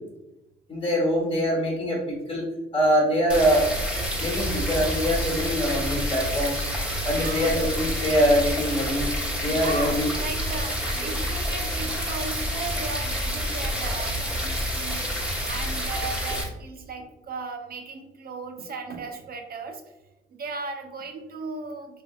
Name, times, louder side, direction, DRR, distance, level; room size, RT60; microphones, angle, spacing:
voice 1, 0.7-2.5 2.7-3.7 4.2-6.7 7.0-9.1 9.4-10.1, equal, 25° left, -4 dB, 1.2 m, -23 dB
sound 1, 3.3-16.4, equal, 5° right, 1.0 m, -28 dB
voice 2, 7.1-7.5 9.5-19.8 20.3-22.0, right 4 dB, 50° right, 4 dB, 0.7 m, -36 dB
3.4 x 3.1 x 2.4 m, 0.97 s
cardioid pair, 90°, 20 cm